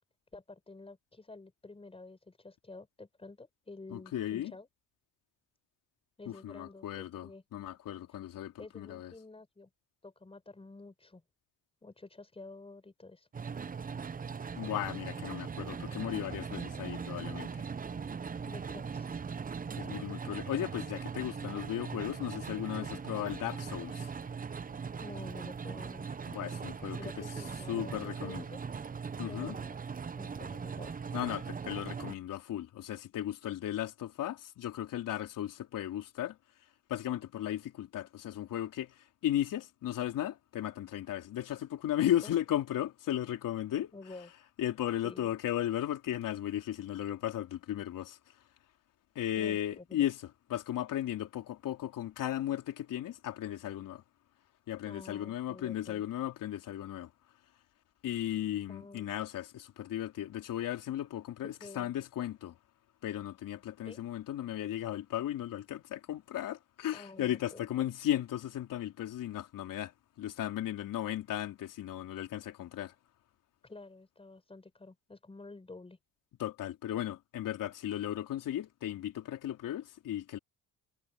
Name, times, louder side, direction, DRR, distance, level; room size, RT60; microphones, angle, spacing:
voice 1, 0.3-4.7 6.2-7.4 8.6-9.7 10.0-11.2 11.8-13.3 18.5-19.2 25.0-26.2 27.0-28.6 29.3-29.8 30.2-31.1 42.2-42.4 43.9-44.3 45.0-45.3 49.4-50.0 54.8-56.0 58.7-59.1 61.6-61.9 63.8-64.0 66.9-67.7 73.6-76.0, left 3 dB, 15° left, 5.7 m, -50 dB
voice 2, 3.9-4.5 6.3-9.1 14.5-17.6 19.8-24.1 26.3-27.2 27.7-28.4 29.2-29.6 31.1-36.4 36.9-43.9 44.6-48.3 49.2-54.0 54.7-57.1 58.0-62.6 63.0-69.9 70.2-72.9 76.4-80.4, left 12 dB, 70° left, 3.8 m, -36 dB
sound 1, 13.3-32.1, right 6 dB, 25° right, 0.8 m, -40 dB
cardioid pair, 110°, 33 cm